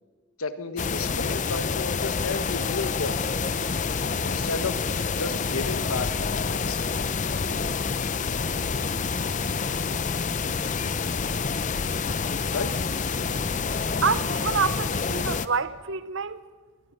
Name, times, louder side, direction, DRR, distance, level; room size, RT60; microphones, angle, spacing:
voice 1, 0.4-3.4 4.2-4.9 5.1-6.9 12.5-12.7, left 4 dB, 80° left, 1.3 m, -32 dB
sound 1, 0.8-15.5, left 5 dB, 35° left, 0.6 m, -28 dB
voice 2, 14.0-16.4, right 5 dB, 60° right, 0.8 m, -27 dB
21.0 x 19.0 x 6.7 m
head